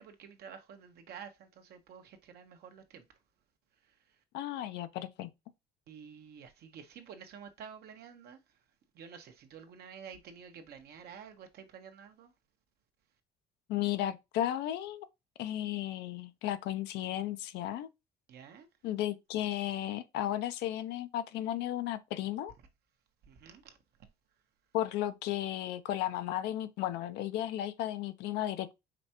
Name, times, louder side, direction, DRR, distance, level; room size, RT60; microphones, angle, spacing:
voice 1, 0.0-3.1 3.8-3.9 5.9-8.4 8.9-12.3 18.3-18.7 23.3-23.8, right 7 dB, 70° right, 1.1 m, -50 dB
voice 2, 4.3-5.3 13.7-15.1 15.4-17.9 18.8-22.5 24.7-28.7, left 12 dB, 85° left, 0.6 m, -34 dB
5.1 x 3.3 x 2.9 m
cardioid pair, 110°, 17 cm